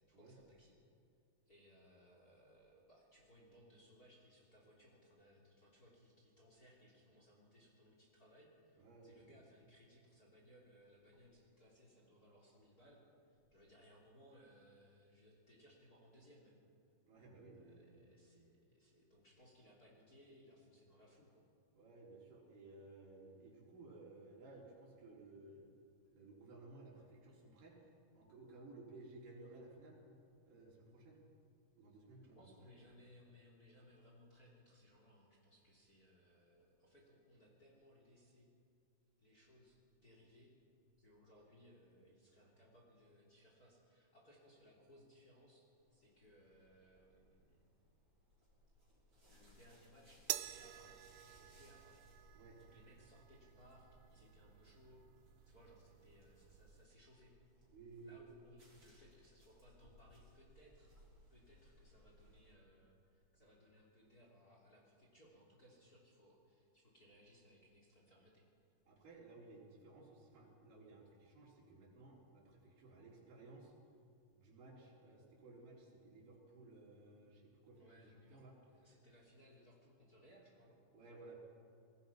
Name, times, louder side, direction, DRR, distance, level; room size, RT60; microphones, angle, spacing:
voice 1, 0.1-0.8 1.4-16.6 17.6-21.4 32.2-38.5 39.2-40.5 41.0-47.7 49.2-50.9 51.2-52.0 52.3-55.0 55.4-57.3 58.0-60.9 61.3-68.4 77.7-80.8, equal, 25° left, -1 dB, 3.1 m, -65 dB
voice 2, 8.7-9.4 17.0-18.0 21.7-25.7 26.1-27.8 28.1-30.0 30.4-31.2 31.8-32.7 52.3-52.6 57.7-58.2 68.9-73.7 74.3-78.6 80.9-81.4, right 2 dB, 50° right, -3 dB, 5.6 m, -58 dB
sound 1, 45.8-62.5, equal, 20° right, 6.0 m, -68 dB
sound 2, 50.3-56.9, right 16 dB, 90° right, 3.1 m, -50 dB
25.5 x 21.0 x 5.9 m, 2.4 s
omnidirectional pair, 5.1 m